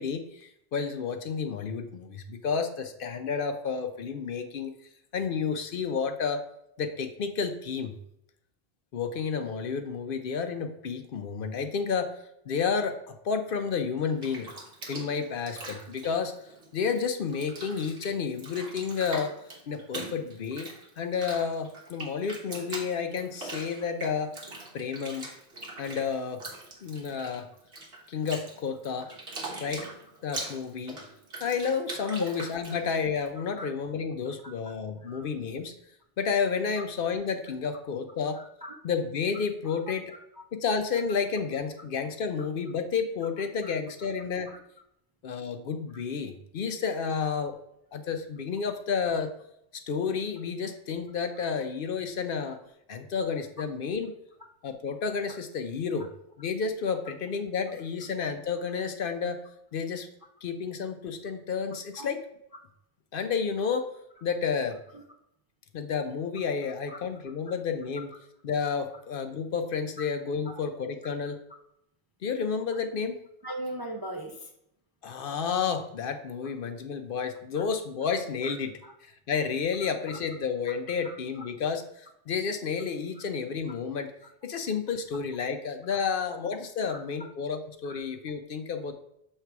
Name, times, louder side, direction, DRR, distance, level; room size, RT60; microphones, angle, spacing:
voice 1, 0.0-4.7 5.1-6.4 6.8-7.9 8.9-12.2 12.5-14.5 14.9-16.3 16.7-19.3 19.7-20.7 21.0-24.3 24.7-25.3 25.8-26.4 26.8-27.5 28.1-29.1 29.6-29.9 30.2-31.0 31.4-35.7 36.2-38.4 38.8-40.1 40.5-44.5 45.2-47.6 47.9-49.3 49.7-52.6 52.9-54.1 54.6-56.1 56.4-59.4 59.7-60.1 60.4-62.2 63.1-63.9 64.2-64.8 65.7-68.1 68.4-71.4 72.2-73.2 75.0-78.7 79.0-84.1 84.4-88.9, left 6 dB, 60° left, 7 dB, 0.7 m, -31 dB
Bathtub (filling or washing), 14.0-17.0 17.3-33.3, right 2 dB, 65° right, 1.5 m, -42 dB
voice 2, 33.4-33.7 35.0-35.3 36.8-36.9 38.3-38.8 39.6-39.8 43.6-43.7 53.6-53.7 55.3-55.4 62.0-62.1 64.9-65.0 66.9-67.0 70.0-70.1 73.4-74.5 77.5-77.6 78.4-78.5 78.8-78.9 80.1-80.2 81.0-81.4 83.2-83.3 86.9-87.0 87.8-87.9, right 1 dB, 35° right, 2 dB, 0.4 m, -39 dB
6.9 x 3.3 x 4.6 m, 0.77 s
omnidirectional pair, 1.1 m